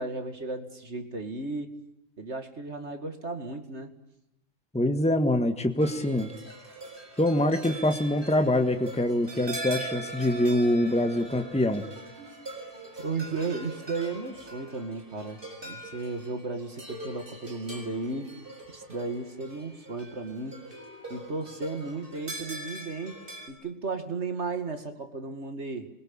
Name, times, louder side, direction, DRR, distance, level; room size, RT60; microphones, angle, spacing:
voice 1, 0.0-1.7 2.2-3.9 13.0-18.3 18.7-20.6 21.1-23.2 23.5-25.9, right 3 dB, 65° right, 7 dB, 2.6 m, -34 dB
voice 2, 4.7-6.3 7.2-11.9, left 1 dB, 5° left, 7 dB, 1.6 m, -24 dB
sound 1, 5.8-23.5, right 2 dB, 45° right, 6.7 m, -42 dB
28.5 x 22.5 x 8.8 m, 0.81 s
omnidirectional pair, 1.3 m